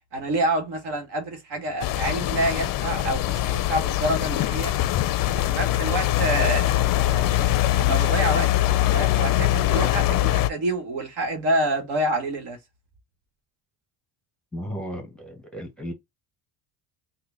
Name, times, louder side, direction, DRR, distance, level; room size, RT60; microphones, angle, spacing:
voice 1, 0.1-4.7 5.3-7.5 7.8-8.5 8.9-12.6, right 1 dB, 60° right, 1.3 m, -27 dB
sound 1, 1.8-10.5, left 14 dB, 50° left, 0.4 m, -22 dB
voice 2, 14.5-15.9, equal, ahead, 1.3 m, -34 dB
3.8 x 2.2 x 3.4 m
cardioid pair, 105°, 45 cm